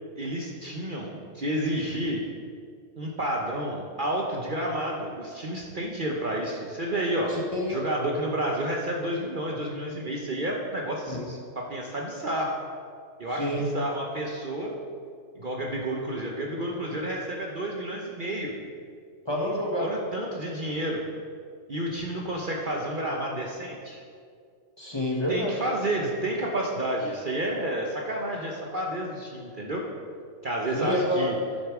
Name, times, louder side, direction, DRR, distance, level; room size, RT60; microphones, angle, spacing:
voice 1, 0.2-2.2 3.0-7.3 7.7-12.6 13.2-14.7 15.3-18.5 19.8-21.0 21.7-24.0 25.3-29.8 30.4-31.4, right 1 dB, 45° right, -1 dB, 0.9 m, -30 dB
voice 2, 7.3-7.8 11.1-11.2 13.3-13.7 19.2-19.9 24.8-25.6 30.7-31.3, left 1 dB, 20° left, -2 dB, 1.1 m, -28 dB
11.0 x 6.5 x 4.8 m, 2.2 s
omnidirectional pair, 1.4 m